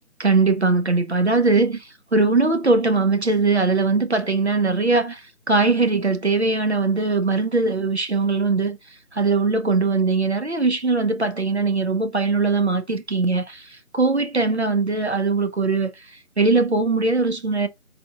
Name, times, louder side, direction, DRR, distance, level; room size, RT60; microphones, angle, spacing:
voice 1, 0.2-17.7, right 3 dB, 50° right, 0.6 m, -21 dB
4.2 x 2.4 x 3.9 m
figure-of-eight pair, 170°, 42 cm